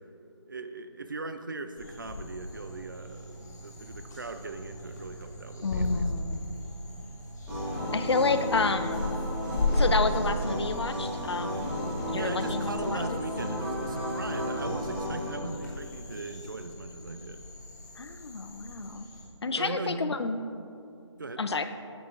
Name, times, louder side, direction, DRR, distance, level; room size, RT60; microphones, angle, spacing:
voice 1, 0.5-6.1 12.1-17.5 19.6-20.0 21.2-21.4, right 3 dB, 45° right, 9 dB, 0.4 m, -39 dB
sound 1, 1.8-19.2, left 1 dB, 35° left, 1.3 m, -36 dB
voice 2, 5.6-6.5 7.9-9.0 9.7-13.2 18.0-19.1 19.4-20.4 21.4-21.6, left 4 dB, 60° left, 9 dB, 0.5 m, -30 dB
sound 2, 7.5-15.3, equal, 5° right, 1.1 m, -33 dB
8.6 x 8.6 x 2.5 m, 2.6 s
figure-of-eight pair, 165°, 16 cm